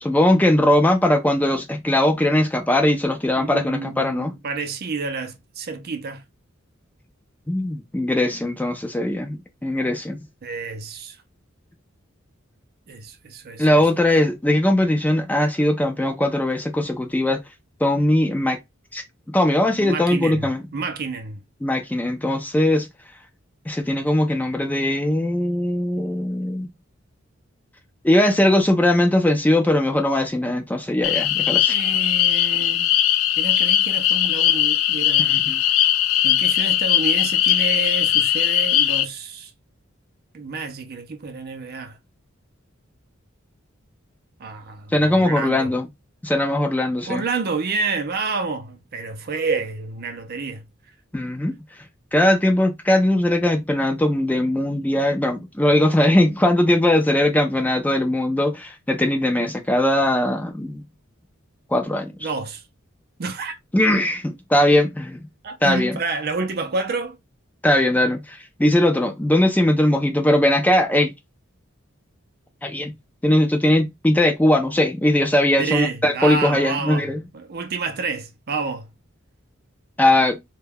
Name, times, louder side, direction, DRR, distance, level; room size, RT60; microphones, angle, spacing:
voice 1, 0.0-4.3 7.5-9.4 9.6-10.2 13.6-17.4 17.8-18.6 18.9-19.0 19.3-20.6 21.6-22.9 23.7-26.7 28.0-31.8 35.3-35.6 44.9-45.9 46.2-47.2 51.1-51.5 52.1-60.8 61.7-62.3 63.7-65.2 65.6-65.9 67.6-71.1 72.6-72.9 73.2-77.2 80.0-80.4, left 1 dB, 10° left, 0.4 m, -20 dB
voice 2, 3.4-6.2 10.4-11.2 12.9-13.9 19.8-21.4 31.7-32.9 33.4-35.4 36.2-39.5 40.3-42.0 44.4-45.7 47.1-50.7 62.2-62.6 63.2-63.6 65.4-67.2 75.6-78.9, right 4 dB, 50° right, 0.5 m, -29 dB
sound 1, 31.0-39.0, left 11 dB, 85° left, 0.4 m, -19 dB
2.2 x 2.2 x 3.3 m
head